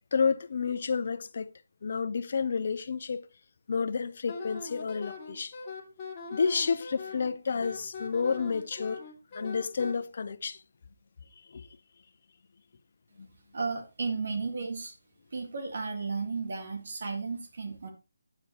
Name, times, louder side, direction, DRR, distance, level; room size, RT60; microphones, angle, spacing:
voice 1, 0.1-1.5 1.8-3.3 3.7-5.5 6.3-9.0 9.3-10.6 11.5-11.7 13.2-13.3, left 5 dB, 50° left, 0.8 m, -30 dB
Wind instrument woodwind instrument, 4.3-9.9, left 4 dB, 25° left, 2.2 m, -41 dB
voice 2, 13.5-15.0 15.3-17.9, right 4 dB, 55° right, 1.8 m, -34 dB
9.3 x 8.5 x 3.0 m
figure-of-eight pair, 160°, 0 cm